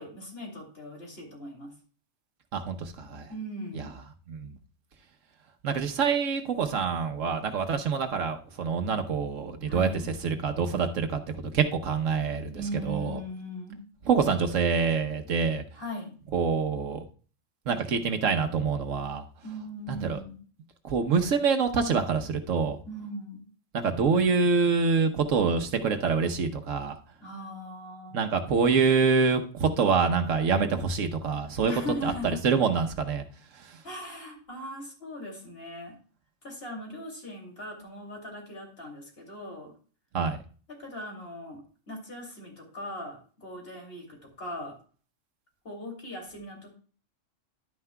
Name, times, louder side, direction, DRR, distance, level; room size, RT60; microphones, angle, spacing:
voice 1, 0.0-1.7 3.3-3.9 9.7-10.1 12.5-13.8 15.8-16.1 19.4-20.3 22.8-23.4 27.2-28.3 31.7-32.4 33.8-36.0 36.4-39.7 40.7-44.7 45.6-46.8, equal, 50° left, 0 dB, 2.9 m, -39 dB
voice 2, 2.5-3.3 3.7-3.9 4.3-4.5 5.6-9.9 10.2-13.2 14.1-15.6 16.3-17.1 17.7-19.2 19.9-20.2 20.8-22.8 23.7-27.0 28.1-31.7 32.0-33.2 33.6-33.8 40.1-40.4, right 5 dB, 75° right, 6 dB, 1.3 m, -26 dB
11.0 x 9.4 x 2.2 m, 0.39 s
omnidirectional pair, 1.3 m